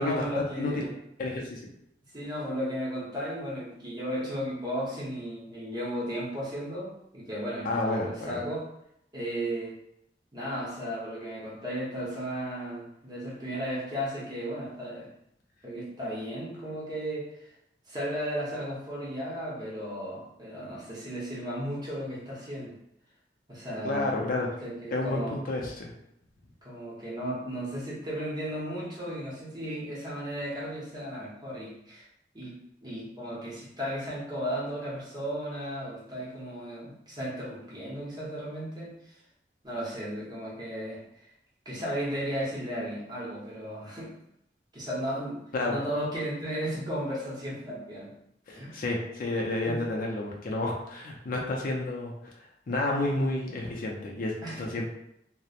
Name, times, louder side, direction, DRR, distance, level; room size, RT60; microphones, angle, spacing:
voice 1, 0.0-0.9 2.1-8.7 9.1-9.8 10.3-15.1 15.6-17.3 17.9-22.8 23.5-25.3 26.6-32.1 32.3-32.6 32.8-39.2 39.6-41.0 41.6-44.2 44.7-45.4 45.7-48.1 48.5-48.8 49.7-49.8 54.4-54.8, equal, 25° right, -6 dB, 0.8 m, -35 dB
voice 2, 0.6-1.6 7.6-8.4 23.8-24.5 24.9-25.9 45.5-45.8 48.5-52.1 52.7-54.9, left 2 dB, 50° left, -1 dB, 0.4 m, -30 dB
2.9 x 2.0 x 2.4 m, 0.78 s
head